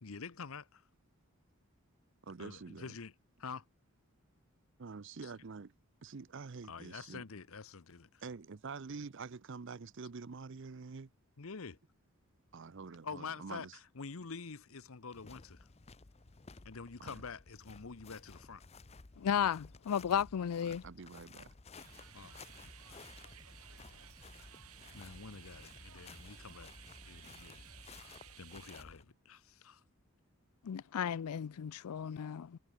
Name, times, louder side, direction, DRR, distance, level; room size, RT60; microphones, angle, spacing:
voice 1, 0.0-0.9 2.4-3.1 3.4-3.7 5.2-5.3 6.6-8.2 11.4-11.8 13.0-15.7 16.6-18.6 22.1-22.4 24.9-29.8, left 5 dB, 70° left, 0.9 m, -47 dB
voice 2, 2.2-3.0 4.8-5.7 6.0-7.2 8.2-11.1 12.5-13.8 17.0-17.2 20.6-21.5, right 4 dB, 55° right, 0.6 m, -47 dB
sound 1, 15.1-29.1, left 4 dB, 30° left, 0.7 m, -56 dB
voice 3, 19.2-20.8 30.6-32.6, left 8 dB, 90° left, 0.4 m, -34 dB
sound 2, 21.7-28.8, right 11 dB, 80° right, 5.0 m, -57 dB
sound 3, 21.8-28.0, equal, 20° right, 3.8 m, -59 dB
head